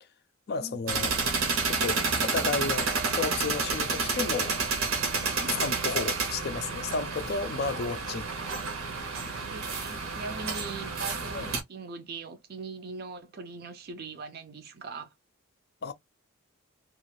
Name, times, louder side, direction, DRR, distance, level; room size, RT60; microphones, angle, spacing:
voice 1, 0.5-1.1 1.7-4.6 5.2-8.3 11.3-11.5 15.8-15.9, left 4 dB, 45° left, 0.4 m, -33 dB
sound 1, 0.9-11.6, right 4 dB, 70° right, 0.8 m, -30 dB
voice 2, 5.4-5.7 9.5-15.1, right 3 dB, 45° right, 0.4 m, -41 dB
2.4 x 2.3 x 3.1 m
head